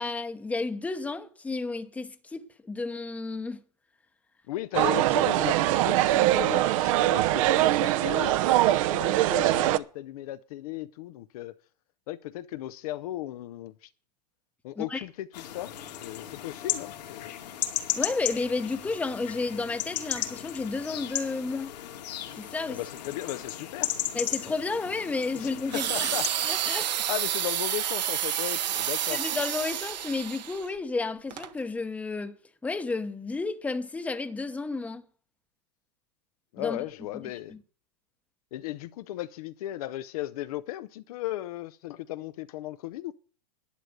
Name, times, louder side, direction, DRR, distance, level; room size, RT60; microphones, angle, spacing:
voice 1, 0.0-3.6 14.8-15.1 17.9-21.8 22.3-22.8 24.1-26.1 26.4-27.0 29.1-32.4 32.6-35.0 36.6-36.8 37.1-37.2 37.5-37.6, left 3 dB, 5° left, 0.9 m, -32 dB
voice 2, 4.5-11.6 12.1-13.9 14.6-15.7 16.0-17.3 22.7-23.9 25.3-25.5 25.9-26.5 27.1-29.2 36.5-37.6 38.5-43.1, left 15 dB, 60° left, 0.6 m, -36 dB
sound 1, 4.7-9.8, right 15 dB, 50° right, 0.8 m, -23 dB
sound 2, 15.3-26.3, left 12 dB, 75° left, 2.4 m, -35 dB
sound 3, 25.7-30.7 31.3-31.5, right 11 dB, 85° right, 1.6 m, -29 dB
11.5 x 9.0 x 6.6 m
supercardioid pair, 145°, 21 cm